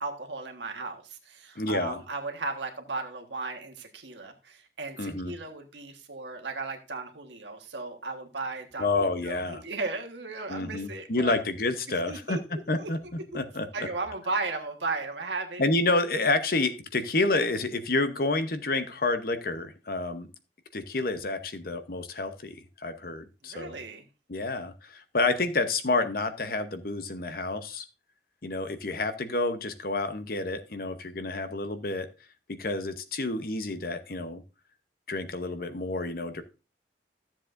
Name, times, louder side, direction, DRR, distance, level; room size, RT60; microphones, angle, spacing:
voice 1, 0.0-11.4 11.9-12.9 13.3-13.4 13.7-15.6 23.4-24.0, right 3 dB, 90° right, 5 dB, 1.4 m, -36 dB
voice 2, 1.6-2.0 5.0-5.3 8.8-9.6 10.5-12.4 12.7-13.0 13.3-13.7 15.6-20.3 20.7-23.8 24.3-27.8 28.4-32.1 32.5-34.4 35.1-36.4, left 2 dB, 55° left, 9 dB, 0.9 m, -29 dB
13.5 x 7.3 x 2.6 m, 0.30 s
head